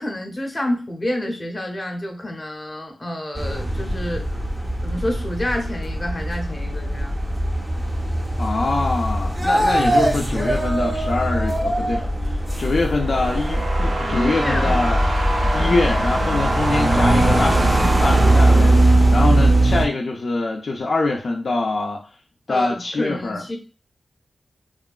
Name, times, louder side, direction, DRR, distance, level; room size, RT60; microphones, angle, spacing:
voice 1, 0.0-4.2 4.8-7.2 14.0-15.0 15.5-15.9 19.2-19.5 22.5-23.6, left 1 dB, 25° left, 2 dB, 0.6 m, -28 dB
sound 1, 3.3-19.9, right 1 dB, 20° right, 0.5 m, -20 dB
voice 2, 8.4-15.0 15.5-22.0 22.5-23.4, left 3 dB, 60° left, 0 dB, 0.3 m, -24 dB
sound 2, 12.3-19.4, right 1 dB, 60° right, 0.6 m, -26 dB
3.0 x 2.2 x 2.3 m, 0.35 s
wide cardioid pair, 80°, 0 cm